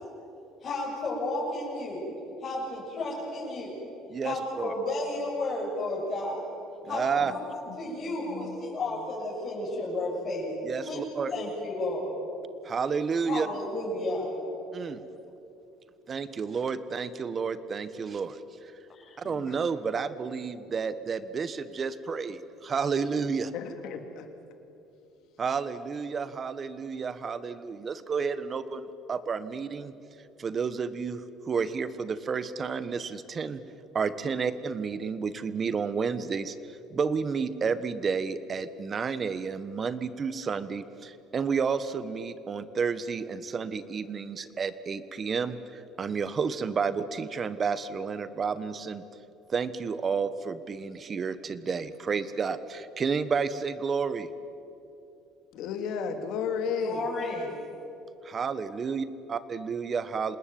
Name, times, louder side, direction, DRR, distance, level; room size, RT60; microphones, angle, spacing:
voice 1, 0.6-2.1 2.4-3.7 4.2-6.5 6.9-7.4 7.8-10.5 10.8-11.0 11.3-12.1 13.2-14.3 18.9-19.2 56.8-57.5, left 2 dB, 35° left, -7 dB, 7.2 m, -32 dB
voice 2, 4.1-4.7 6.9-7.3 10.6-11.3 12.6-13.5 14.7-15.0 16.1-18.7 19.2-23.5 25.4-29.9 30.4-33.6 33.9-36.6 36.9-49.0 49.5-54.3 58.2-60.4, right 5 dB, 35° right, 14 dB, 1.4 m, -31 dB
voice 3, 7.7-8.6 19.2-19.6 23.5-24.3 55.5-57.0, left 6 dB, 70° left, 6 dB, 3.1 m, -34 dB
27.5 x 19.5 x 9.3 m, 2.9 s
cardioid pair, 115°, 0 cm